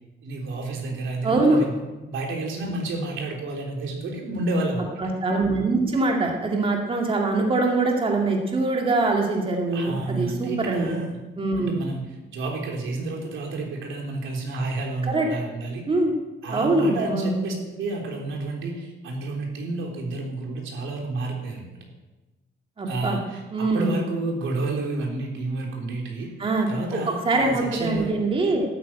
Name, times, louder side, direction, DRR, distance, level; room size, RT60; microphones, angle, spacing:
voice 1, 0.2-1.7 2.1-4.9 9.7-11.2 11.6-12.1 12.3-15.8 16.4-21.7 22.9-26.3 26.7-28.1, right 2 dB, 90° right, 1 dB, 3.6 m, -30 dB
voice 2, 1.2-1.6 5.0-11.0 11.4-11.8 15.1-15.3 15.9-16.1 16.5-17.4 22.8-23.2 23.5-23.9 26.4-26.7 27.2-28.6, right 2 dB, 25° right, 1 dB, 2.2 m, -23 dB
12.5 x 9.3 x 8.9 m, 1.1 s
cardioid pair, 150°, 20 cm